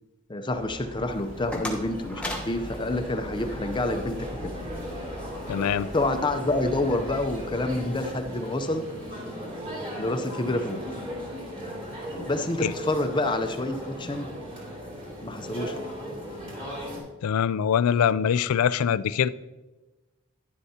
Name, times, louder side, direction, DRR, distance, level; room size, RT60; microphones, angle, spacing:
voice 1, 0.3-4.3 5.9-8.9 10.0-10.8 12.3-14.3 15.2-15.9, left 2 dB, 20° left, 7 dB, 0.6 m, -28 dB
sound 1, 0.5-8.0, equal, 45° right, 3.3 m, -42 dB
sound 2, 0.9-17.0, equal, 25° right, 2.9 m, -37 dB
sound 3, 1.1-3.9, left 1 dB, 5° left, 1.1 m, -38 dB
voice 2, 5.5-5.9 12.6-12.7 17.2-19.3, left 8 dB, 90° left, 17 dB, 0.4 m, -23 dB
11.5 x 10.5 x 2.8 m, 1.1 s
head